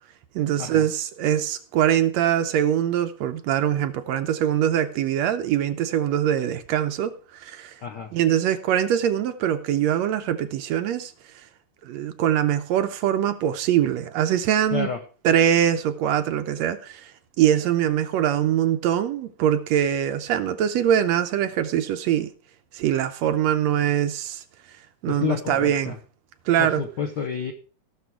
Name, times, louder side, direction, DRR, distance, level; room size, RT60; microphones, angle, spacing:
voice 1, 0.3-7.7 8.1-11.1 11.8-14.9 15.2-17.1 17.4-22.3 22.7-24.4 25.0-25.9 26.5-26.8, right 10 dB, 75° right, 1.8 m, -23 dB
voice 2, 25.1-26.0 26.6-27.5, left 6 dB, 85° left, 0.9 m, -29 dB
16.5 x 6.4 x 4.6 m
omnidirectional pair, 3.4 m